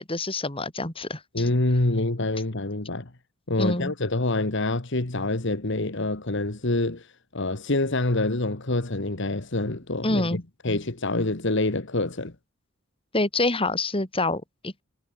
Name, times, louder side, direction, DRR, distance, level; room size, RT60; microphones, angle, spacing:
voice 1, 0.0-1.5 3.6-3.9 10.0-10.4 13.1-14.8, left 2 dB, 25° left, 4.1 m, -27 dB
voice 2, 1.3-3.1 3.5-12.3, left 2 dB, 60° left, 1.8 m, -26 dB
head